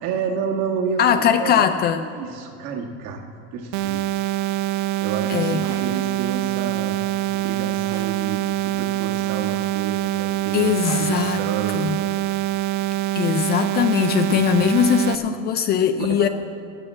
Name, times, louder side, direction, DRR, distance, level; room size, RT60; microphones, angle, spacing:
voice 1, 0.0-1.7 2.1-3.2 3.5-4.2 5.0-7.0 7.3-12.1 14.3-14.7 16.0-16.3, right 6 dB, 50° right, 2 dB, 1.7 m, -30 dB
voice 2, 1.0-2.0 5.3-5.6 10.5-11.4 11.7-12.0 13.2-16.3, left 8 dB, 30° left, 10 dB, 0.4 m, -20 dB
sound 1, 3.7-15.1, right 14 dB, 75° right, 0.6 m, -24 dB
sound 2, 5.6-5.9 7.9-8.1 9.4-9.9 10.8-11.2 12.6-12.8, right 3 dB, 10° right, 1.4 m, -39 dB
17.5 x 6.5 x 7.4 m, 2.4 s
cardioid pair, 155°, 33 cm